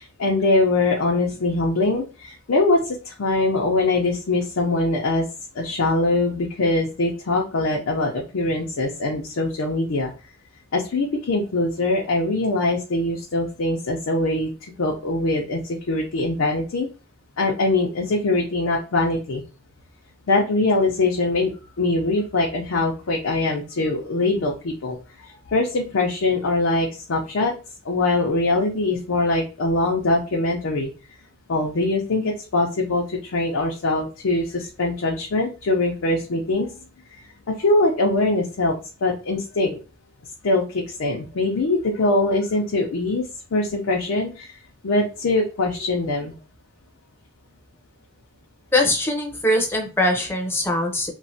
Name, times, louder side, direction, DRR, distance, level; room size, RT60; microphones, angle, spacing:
voice 1, 0.0-5.3 5.5-10.1 10.7-14.5 14.8-16.9 17.4-19.4 20.3-21.5 21.8-27.5 27.8-30.9 31.5-36.7 37.1-39.8 40.4-46.4, left 2 dB, 90° left, -1 dB, 0.5 m, -22 dB
voice 2, 48.7-51.1, left 1 dB, 10° left, 1 dB, 0.5 m, -22 dB
3.1 x 2.1 x 2.6 m, 0.33 s
head